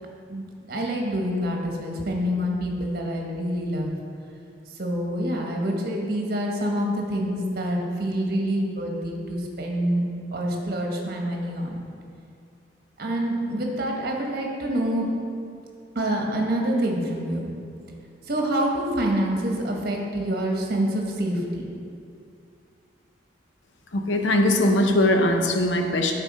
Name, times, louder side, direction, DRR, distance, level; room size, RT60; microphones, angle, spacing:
voice 1, 0.3-3.9 4.8-10.0 10.3-11.8 13.0-15.1 15.9-17.5 18.3-21.6, right 1 dB, 55° right, 0 dB, 1.1 m, -26 dB
voice 2, 23.9-26.1, left 1 dB, 80° left, 4 dB, 0.7 m, -21 dB
9.8 x 4.1 x 4.2 m, 2.4 s
head